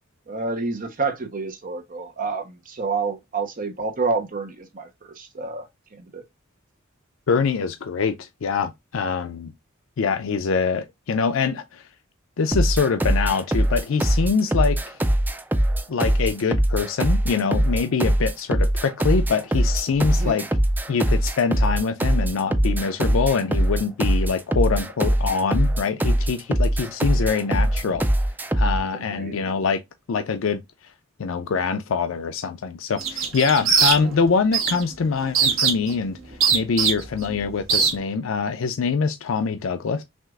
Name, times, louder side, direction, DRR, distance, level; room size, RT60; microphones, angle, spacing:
voice 1, 0.3-5.7 6.0-6.2 20.1-20.3 28.9-29.4, right 4 dB, 40° right, 0.8 m, -29 dB
voice 2, 7.3-9.5 10.0-11.8 12.4-14.8 15.9-20.4 20.9-28.1 28.5-29.8 30.1-30.6 31.2-36.2 36.5-40.0, left 5 dB, 70° left, 0.4 m, -24 dB
sound 1, 12.5-28.8, right 1 dB, 10° right, 0.3 m, -22 dB
sound 2, 33.0-34.2 34.5-34.8 35.3-35.9 36.4-37.2 37.7-37.9, right 6 dB, 70° right, 1.4 m, -20 dB
6.1 x 2.4 x 2.3 m
head